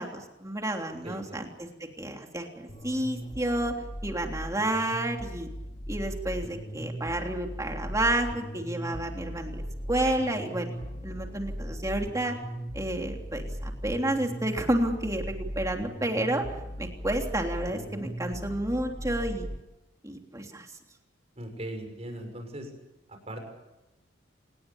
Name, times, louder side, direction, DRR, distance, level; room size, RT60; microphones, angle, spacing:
voice 1, 0.0-1.7 2.0-3.7 4.0-5.5 5.9-9.6 9.9-10.7 11.0-12.3 12.7-16.5 16.8-19.5 20.0-20.7, right 1 dB, 15° right, 2 dB, 3.3 m, -30 dB
voice 2, 1.0-1.5 21.4-22.7 23.1-23.4, right 1 dB, 35° right, 4 dB, 6.4 m, -39 dB
sound 1, 2.7-19.6, equal, 30° left, 2.8 m, -38 dB
28.0 x 20.0 x 7.1 m, 0.95 s
head